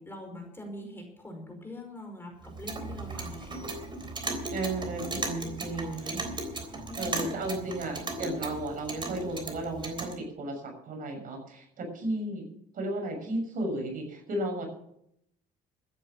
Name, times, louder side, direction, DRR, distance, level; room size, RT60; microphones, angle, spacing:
voice 1, 0.0-3.5 6.8-7.5, left 1 dB, 15° left, 3 dB, 5.2 m, -43 dB
Clock, 2.4-10.2, right 2 dB, 30° right, 3.6 m, -36 dB
voice 2, 4.5-6.2 6.9-12.5 12.7-14.7, right 1 dB, 55° right, 3 dB, 6.6 m, -34 dB
13.5 x 10.0 x 7.5 m, 0.74 s
cardioid pair, 110°, 17 cm